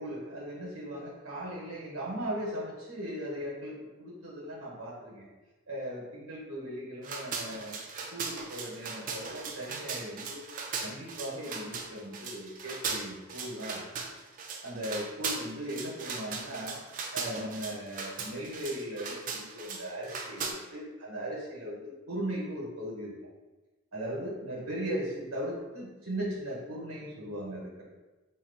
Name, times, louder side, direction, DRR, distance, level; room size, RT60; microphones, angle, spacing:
voice 1, 0.0-5.3 5.7-7.8 8.1-10.4 10.8-13.8 14.6-16.8 17.1-21.8 22.1-23.1 23.9-27.8, right 1 dB, 90° right, -4 dB, 1.0 m, -38 dB
sound 1, 7.0-20.5, right 5 dB, 40° right, 0.3 m, -38 dB
2.8 x 2.4 x 3.7 m, 1.2 s
head